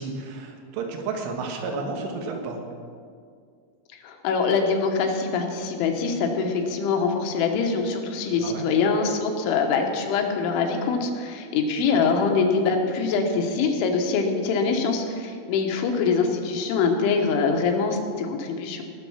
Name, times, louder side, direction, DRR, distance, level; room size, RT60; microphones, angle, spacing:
voice 1, 0.0-2.6 8.4-8.6 12.0-12.2, right 4 dB, 90° right, 3 dB, 3.8 m, -32 dB
voice 2, 4.0-18.8, left 5 dB, 80° left, 3 dB, 3.5 m, -24 dB
19.0 x 6.6 x 5.7 m, 2.2 s
omnidirectional pair, 5.5 m